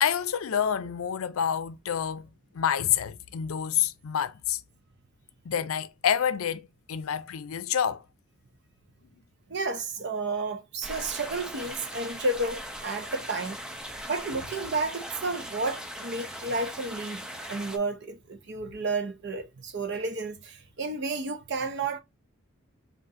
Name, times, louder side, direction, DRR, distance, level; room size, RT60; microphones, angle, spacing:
voice 1, 0.0-2.3 2.5-4.6 5.5-8.0, left 9 dB, 80° left, 0.5 m, -28 dB
voice 2, 9.5-13.6 14.0-22.0, right 3 dB, 55° right, 0.7 m, -32 dB
sound 1, 10.8-17.8, equal, 5° right, 0.4 m, -39 dB
3.7 x 2.5 x 4.1 m
head